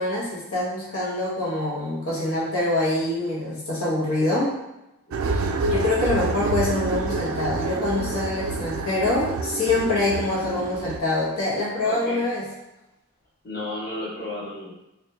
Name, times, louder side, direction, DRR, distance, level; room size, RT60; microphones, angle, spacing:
voice 1, 0.0-4.5 5.3-12.5, left 2 dB, 90° left, -7 dB, 1.2 m, -25 dB
voice 2, 5.1-5.5 11.8-12.2 13.4-14.7, left 1 dB, 45° left, -9 dB, 1.2 m, -33 dB
sound 1, 5.1-11.0, right 3 dB, 70° right, 0.3 m, -28 dB
4.1 x 2.6 x 2.7 m, 0.94 s
head